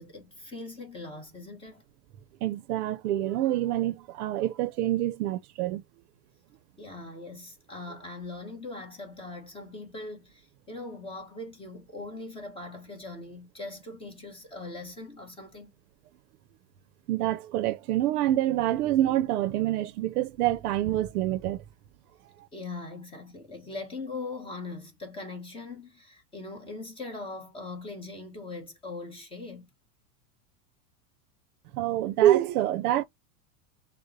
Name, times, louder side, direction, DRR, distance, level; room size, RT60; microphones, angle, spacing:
voice 1, 0.0-1.8 6.8-15.7 22.5-29.7, left 3 dB, 10° left, 1.0 m, -41 dB
voice 2, 2.4-5.8 17.1-21.6 31.7-33.0, right 13 dB, 70° right, 0.6 m, -26 dB
6.5 x 2.2 x 2.6 m
supercardioid pair, 150°, 47 cm